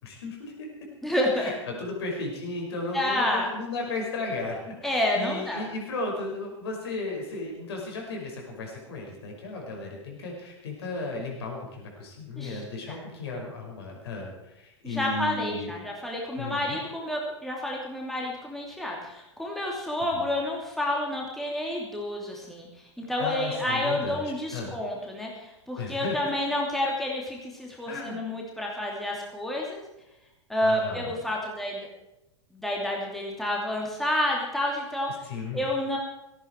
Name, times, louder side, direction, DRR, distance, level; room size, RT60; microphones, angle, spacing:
voice 1, 0.0-0.7 1.4-15.7 16.4-16.8 20.1-20.2 23.2-24.7 25.8-26.1 27.8-28.2 30.6-31.1 35.2-35.6, left 3 dB, 60° left, 0 dB, 5.8 m, -35 dB
voice 2, 1.0-1.5 2.9-3.5 4.8-5.6 12.4-12.6 12.9-13.0 14.8-29.8 30.5-31.9 32.5-36.0, left 1 dB, ahead, -2 dB, 3.0 m, -29 dB
17.0 x 15.0 x 4.7 m, 0.91 s
figure-of-eight pair, 95°, 15 cm